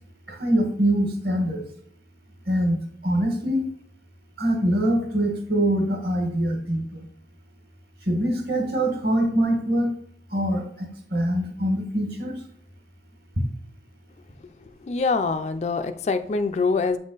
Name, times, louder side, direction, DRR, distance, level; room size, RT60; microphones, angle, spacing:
voice 1, 0.3-1.7 2.5-3.7 4.4-7.0 8.0-9.9 10.3-12.4, right 1 dB, 60° right, 3 dB, 1.4 m, -24 dB
voice 2, 14.8-17.0, left 4 dB, 35° left, 9 dB, 0.3 m, -24 dB
7.9 x 3.6 x 3.9 m, 0.64 s
head